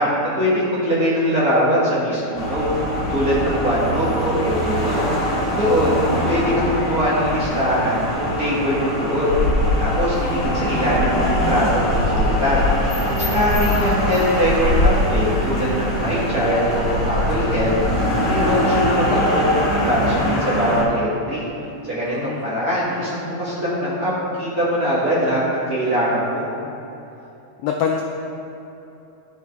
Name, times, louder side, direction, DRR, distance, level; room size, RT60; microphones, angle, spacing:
voice 1, 0.0-5.0 5.5-12.6 13.2-21.5 21.8-24.1 24.4-26.5, equal, 40° right, -8 dB, 1.4 m, -22 dB
sound 1, 2.3-20.8, left 1 dB, 45° left, 2.0 m, -22 dB
voice 2, 22.0-22.5 27.6-28.0, left 7 dB, 90° left, 1 dB, 1.3 m, -24 dB
13.0 x 4.9 x 3.5 m, 2.9 s
omnidirectional pair, 3.3 m